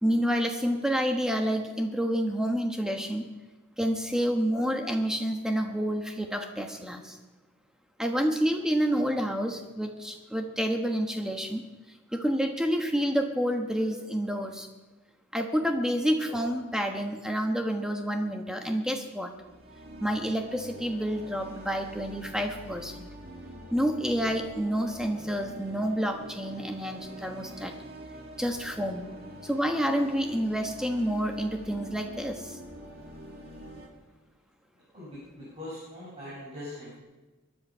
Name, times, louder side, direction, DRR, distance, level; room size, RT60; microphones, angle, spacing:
voice 1, 0.0-3.2 3.8-7.2 8.0-11.6 12.1-14.7 15.3-19.3 20.0-23.1 23.7-27.7 28.4-29.1 29.4-32.6, equal, 5° right, 4 dB, 1.2 m, -29 dB
sound 1, 19.3-33.9, equal, 45° right, 2.3 m, -45 dB
voice 2, 34.9-37.0, left 2 dB, 25° right, -8 dB, 5.1 m, -42 dB
22.0 x 10.0 x 5.6 m, 1.2 s
head